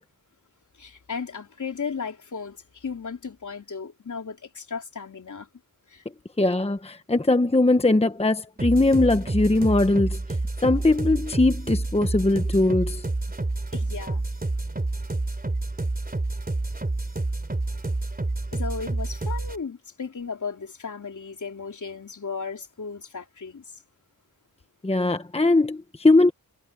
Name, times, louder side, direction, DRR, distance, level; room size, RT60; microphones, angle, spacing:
voice 1, 0.8-5.5 5.9-6.0 13.7-14.2 18.5-23.6, left 5 dB, 50° left, 3.6 m, -35 dB
voice 2, 6.4-10.2 10.6-13.1 24.8-26.3, left 2 dB, 15° left, 1.2 m, -20 dB
sound 1, 8.6-19.6, right 2 dB, 25° right, 3.3 m, -28 dB
wide cardioid pair, 80°, 37 cm